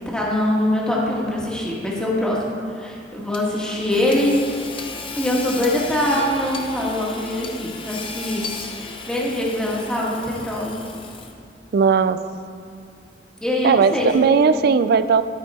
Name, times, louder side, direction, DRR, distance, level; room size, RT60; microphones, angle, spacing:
voice 1, 0.1-4.4 5.1-8.5 9.1-10.7 13.4-14.5, left 1 dB, 5° left, -5 dB, 1.5 m, -23 dB
Hammer / Sawing, 3.3-11.5, left 4 dB, 30° left, 0.7 m, -35 dB
voice 2, 11.7-12.2 13.6-15.2, right 5 dB, 60° right, 13 dB, 0.4 m, -17 dB
12.5 x 5.4 x 4.2 m, 2.4 s
head